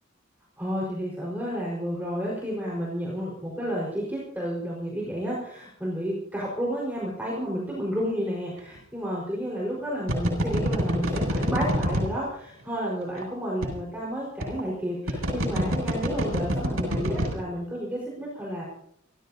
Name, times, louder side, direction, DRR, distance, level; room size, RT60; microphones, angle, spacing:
voice 1, 0.6-18.6, equal, 10° right, -5 dB, 4.8 m, -31 dB
sound 1, 8.6-8.8 10.1-12.2 13.2-13.3 13.6-13.7 14.4-14.6 15.1-17.3, equal, 90° right, 7.2 m, -26 dB
30.0 x 14.5 x 2.8 m, 0.72 s
head